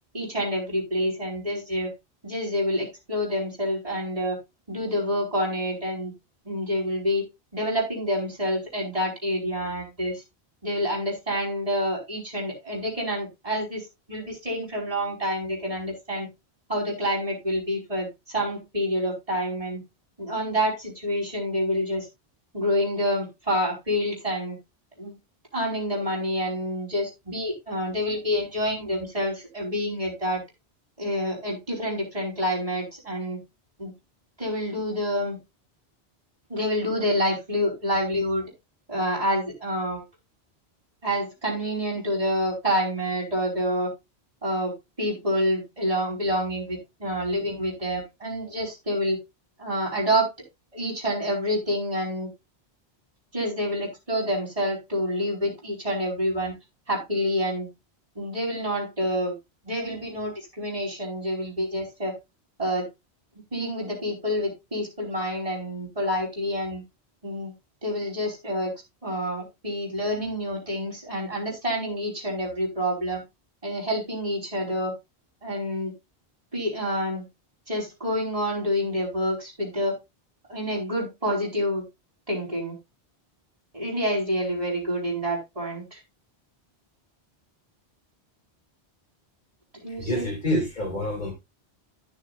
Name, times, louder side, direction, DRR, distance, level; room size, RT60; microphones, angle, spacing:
voice 1, 0.1-1.9 2.2-4.4 4.7-6.1 6.4-7.3 7.5-10.2 10.6-13.8 14.1-16.3 16.7-19.8 20.2-22.1 22.5-24.5 25.0-25.1 25.5-30.4 31.0-33.4 33.8-33.9 34.4-35.4 36.5-38.5 38.9-40.0 41.0-43.9 44.4-49.2 49.6-50.3 50.7-52.3 53.3-56.5 56.9-57.7 58.1-59.3 59.6-62.1 62.6-62.9 63.5-66.8 67.2-67.5 67.8-68.7 69.0-73.2 73.6-74.9 75.4-75.9 76.5-77.2 77.7-80.0 80.5-81.8 82.3-82.8 83.7-86.0 89.7-90.3, equal, 30° right, 5.1 m, -27 dB
voice 2, 90.0-91.3, left 1 dB, 45° left, 3.1 m, -27 dB
14.5 x 7.1 x 2.5 m
omnidirectional pair, 1.1 m